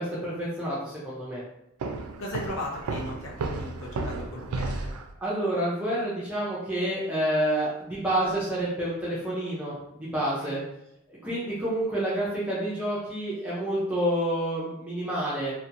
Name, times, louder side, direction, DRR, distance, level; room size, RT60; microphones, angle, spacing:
voice 1, 0.0-1.4 5.2-10.6 11.2-15.5, right 1 dB, 5° right, -8 dB, 0.4 m, -28 dB
Walk footsteps, 1.8-5.1, right 3 dB, 90° right, 0.3 m, -33 dB
voice 2, 2.2-4.9 10.4-10.7, left 1 dB, 70° left, -3 dB, 0.7 m, -37 dB
2.8 x 2.2 x 2.5 m, 0.83 s
head